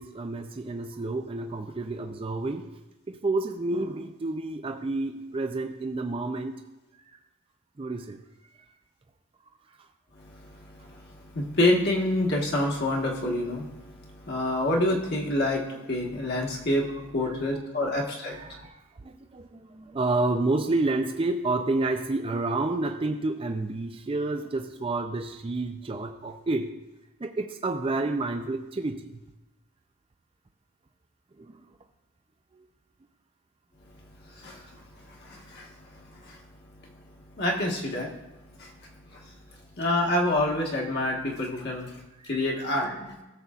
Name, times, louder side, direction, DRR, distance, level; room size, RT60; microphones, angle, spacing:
voice 1, 0.0-2.7 3.1-6.6 7.8-8.2 9.5-9.6 17.2-17.9 18.3-26.7 27.2-29.2 31.4-31.6 32.5-32.7 42.2-42.3, right 2 dB, 25° right, 6 dB, 0.4 m, -30 dB
voice 2, 10.1-18.6 34.2-36.4 36.8-36.9 37.4-38.1 38.6-38.7 39.1-39.3 39.8-42.0 42.3-43.2, left 1 dB, 50° left, -1 dB, 1.4 m, -28 dB
16.0 x 7.0 x 2.4 m, 1.0 s
head